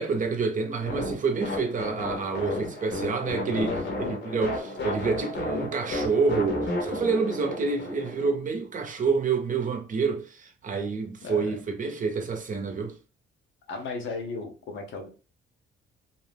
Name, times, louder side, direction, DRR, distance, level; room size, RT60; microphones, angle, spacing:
voice 1, 0.0-12.9, right 4 dB, 40° right, 0.7 m, -28 dB
sound 1, 0.9-8.3, left 1 dB, 65° left, 1.0 m, -32 dB
voice 2, 3.5-3.9 11.2-11.5 13.7-15.1, left 4 dB, 80° left, 0.9 m, -35 dB
2.7 x 2.1 x 3.3 m
cardioid pair, 90°, 20 cm